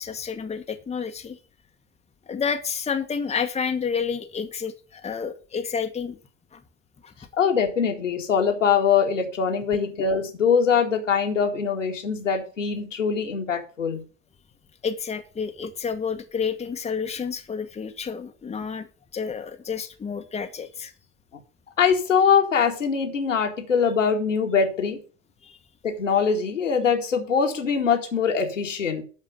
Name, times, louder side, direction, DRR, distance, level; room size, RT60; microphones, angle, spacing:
voice 1, 0.0-1.4 2.3-6.2 6.5-6.6 7.0-7.1 14.8-18.9 19.1-20.9 25.4-25.6, left 6 dB, 15° left, 7 dB, 1.2 m, -30 dB
voice 2, 7.4-14.0 21.8-25.0 25.8-29.0, left 6 dB, 80° left, 3 dB, 2.1 m, -23 dB
11.5 x 4.9 x 7.4 m, 0.38 s
figure-of-eight pair, 75°, 37 cm